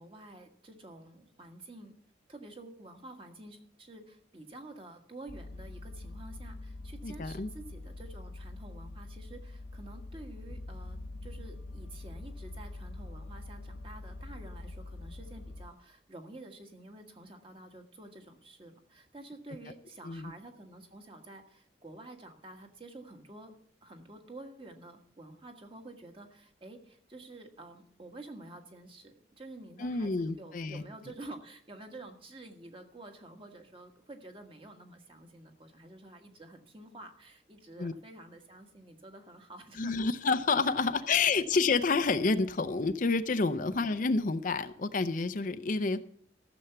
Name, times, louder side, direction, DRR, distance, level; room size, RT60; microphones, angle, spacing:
voice 1, 0.0-2.0 2.3-23.5 23.8-39.9 40.8-40.9 43.6-44.0, right 2 dB, 30° right, 4 dB, 1.5 m, -49 dB
sound 1, 5.3-15.7, left 2 dB, 80° left, 0.9 m, -44 dB
voice 2, 7.0-7.5 20.0-20.3 29.8-30.8 37.8-37.9 39.8-46.0, left 4 dB, 45° left, 10 dB, 0.5 m, -29 dB
14.0 x 7.0 x 6.8 m, 0.63 s
head